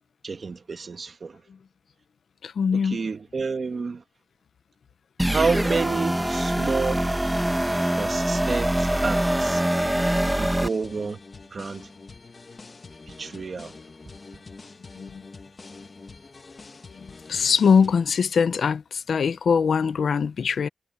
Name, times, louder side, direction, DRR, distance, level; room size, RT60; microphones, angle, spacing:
voice 1, 0.2-1.4 2.7-4.0 5.3-7.1 8.0-9.6 10.4-11.2 11.5-11.9 13.1-13.7, right 4 dB, 35° right, 1.7 m, -29 dB
voice 2, 2.4-3.0 15.0-15.2 17.3-20.7, left 6 dB, 50° left, 0.6 m, -22 dB
sound 1, 5.2-10.7, right 1 dB, 5° right, 1.0 m, -24 dB
sound 2, 10.1-18.1, left 3 dB, 25° left, 1.6 m, -45 dB
wide cardioid pair, 170°, 0 cm